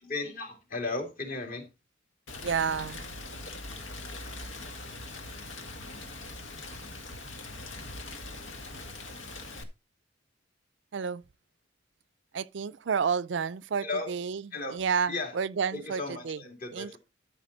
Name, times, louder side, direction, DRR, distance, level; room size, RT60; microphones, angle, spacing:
voice 1, 0.0-1.7 13.8-14.1 14.5-14.8 15.1-15.3 15.7-17.0, left 3 dB, 45° left, 2.7 m, -35 dB
Rain, 2.3-9.6, left 2 dB, 85° left, 1.7 m, -42 dB
voice 2, 2.4-3.2 10.9-11.2 12.3-16.4 16.7-17.0, right 6 dB, 65° right, 0.4 m, -31 dB
13.0 x 5.6 x 4.1 m
head